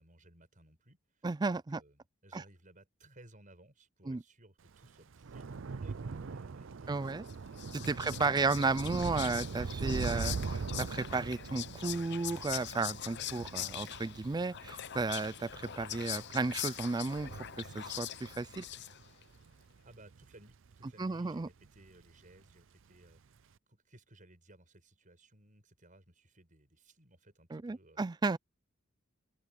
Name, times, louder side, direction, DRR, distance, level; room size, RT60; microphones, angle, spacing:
voice 1, 0.0-8.9 19.8-23.4 23.7-28.0, right 1 dB, 40° right, 6.5 m, -60 dB
voice 2, 1.2-1.8 2.3-2.4 4.1-4.2 6.9-7.2 7.7-17.3 17.6-18.6 21.0-21.5 27.5-28.4, right 3 dB, 20° right, 0.4 m, -33 dB
Thunder / Rain, 4.7-21.3 21.6-22.1 22.3-22.5, right 4 dB, 65° right, 0.5 m, -42 dB
Whispering, 7.3-19.2, left 12 dB, 55° left, 0.7 m, -43 dB
open air
head